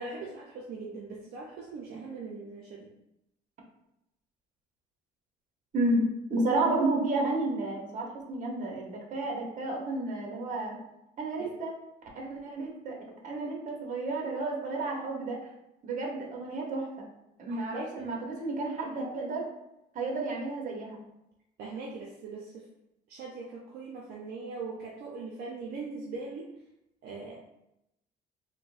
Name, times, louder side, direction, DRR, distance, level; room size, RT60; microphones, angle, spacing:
voice 1, 0.0-2.9 11.4-11.5 17.5-18.1 21.6-22.7 23.1-26.4 27.0-27.4, right 3 dB, 70° right, -3 dB, 0.5 m, -40 dB
voice 2, 6.3-10.8 11.2-11.7 12.1-15.4 15.8-17.1 17.4-19.4 19.9-21.0, right 2 dB, 50° right, -1 dB, 0.9 m, -31 dB
4.3 x 2.1 x 2.4 m, 0.87 s
cardioid pair, 110°, 17 cm